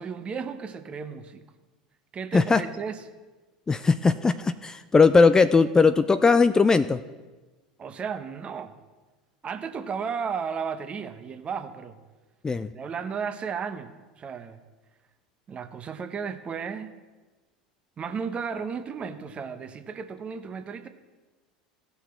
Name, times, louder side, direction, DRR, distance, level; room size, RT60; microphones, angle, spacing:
voice 1, 0.0-1.4 2.1-3.0 7.8-8.7 9.4-12.0 12.7-14.6 15.5-16.9 18.0-20.9, right 6 dB, 30° right, 9 dB, 0.9 m, -34 dB
voice 2, 3.7-7.0 12.4-12.7, left 4 dB, 15° left, 12 dB, 0.3 m, -19 dB
16.5 x 5.7 x 4.3 m, 1.3 s
figure-of-eight pair, 80°, 4 cm